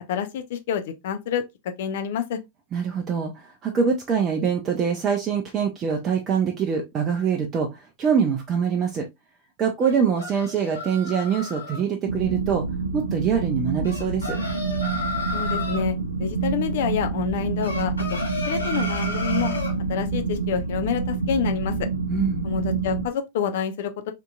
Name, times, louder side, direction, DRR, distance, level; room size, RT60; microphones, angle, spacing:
voice 1, 0.1-1.4 1.8-2.4 15.3-18.2 18.5-19.5 19.9-21.9 22.4-24.1, left 8 dB, 55° left, 0.5 m, -28 dB
voice 2, 2.7-9.1 9.6-12.6 12.9-14.4 22.1-22.5, right 6 dB, 30° right, 0.5 m, -24 dB
sound 1, 9.8-11.8 13.8-15.9 17.6-19.8, left 3 dB, 80° left, 1.0 m, -32 dB
sound 2, 12.1-23.1, right 4 dB, 75° right, 0.4 m, -27 dB
3.5 x 2.8 x 2.3 m
figure-of-eight pair, 90°, 0 cm